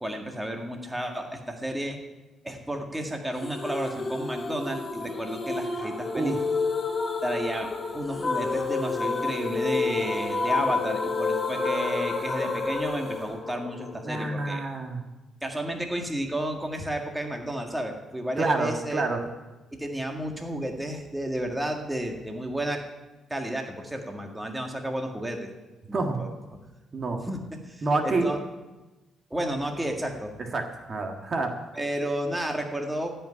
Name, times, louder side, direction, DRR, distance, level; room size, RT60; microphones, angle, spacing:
voice 1, 0.0-2.0 2.4-6.4 7.2-14.6 15.4-19.0 19.8-22.8 23.3-25.5 25.9-26.3 27.3-27.4 27.6-28.4 29.3-30.3 31.7-33.1, right 1 dB, 10° right, 3 dB, 1.7 m, -32 dB
sound 1, 3.4-14.3, left 4 dB, 30° left, 2.0 m, -29 dB
voice 2, 14.0-15.0 18.4-19.2 25.9-26.2 26.9-27.2 27.8-28.3 30.5-31.6 32.0-32.1, right 3 dB, 40° right, 4 dB, 1.7 m, -27 dB
15.5 x 5.5 x 9.9 m, 1.1 s
cardioid pair, 90°, 0 cm